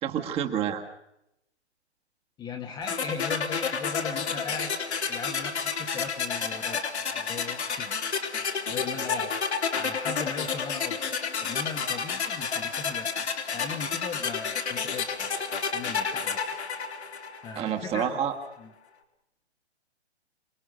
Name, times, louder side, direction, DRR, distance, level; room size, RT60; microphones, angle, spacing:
voice 1, 0.0-0.8 17.6-18.4, right 9 dB, 15° right, 4 dB, 1.9 m, -28 dB
voice 2, 2.4-4.7 5.1-8.0 8.7-9.3 9.7-11.0 11.4-15.1 15.7-16.5 17.4-18.2 18.6-18.7, left 5 dB, 15° left, 3 dB, 1.4 m, -38 dB
sound 1, 2.9-17.8, left 6 dB, 75° left, 3.7 m, -30 dB
28.0 x 20.0 x 6.6 m, 0.83 s
hypercardioid pair, 145°, 34 cm